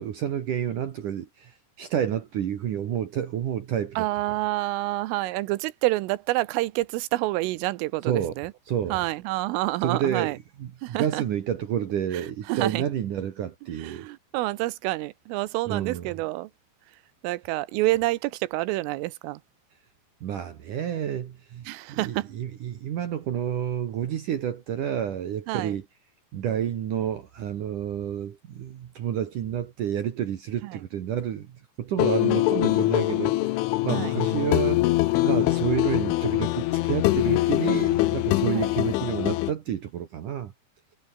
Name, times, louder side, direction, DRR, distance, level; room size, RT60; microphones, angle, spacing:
voice 1, 0.0-4.0 8.0-8.3 8.7-9.0 9.8-14.1 15.7-16.1 20.2-25.8 26.3-31.5 31.8-34.9 35.2-40.5, right 9 dB, 65° right, 2.1 m, -29 dB
voice 2, 4.0-8.5 8.9-10.4 10.8-11.2 12.1-12.8 13.8-16.5 17.2-19.4 21.7-22.3 25.5-25.8 30.6-30.8 32.2-33.3 33.9-34.2 38.5-38.7, right 19 dB, 90° right, 3.4 m, -28 dB
sound 1, 32.0-39.5, left 18 dB, 80° left, 3.3 m, -23 dB
omnidirectional pair, 5.8 m